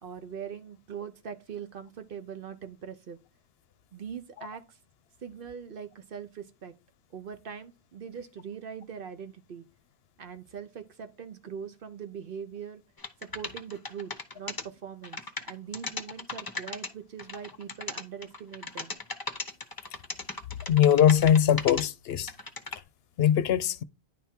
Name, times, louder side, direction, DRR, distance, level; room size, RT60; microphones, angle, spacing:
voice 1, 0.0-3.2 3.9-4.8 5.2-6.7 7.1-9.6 10.2-12.8 13.2-19.0, right 7 dB, 60° right, 1.0 m, -42 dB
sound 1, 13.0-14.6 15.0-16.9 17.2-21.8 22.1-22.8, left 3 dB, 25° left, 0.7 m, -36 dB
voice 2, 20.7-22.3 23.2-23.8, left 10 dB, 75° left, 0.8 m, -21 dB
10.0 x 3.5 x 4.4 m
omnidirectional pair, 1.1 m